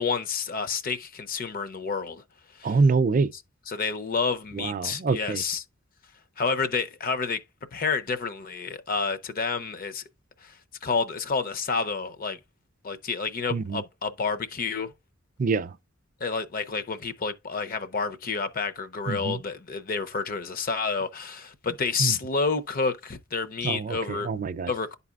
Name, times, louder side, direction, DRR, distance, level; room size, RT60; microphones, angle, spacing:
voice 1, 0.0-2.2 2.6-2.8 3.3-5.6 6.4-7.4 7.7-10.0 10.4-10.6 10.8-12.4 12.8-14.9 16.2-24.3 24.7-24.9, left 5 dB, 45° left, 0.6 m, -29 dB
voice 2, 2.6-3.3 4.6-5.4 13.5-13.8 15.4-15.7 19.1-19.4 22.0-22.1 23.6-24.7, right 4 dB, 40° right, 0.4 m, -25 dB
11.5 x 4.1 x 2.4 m
head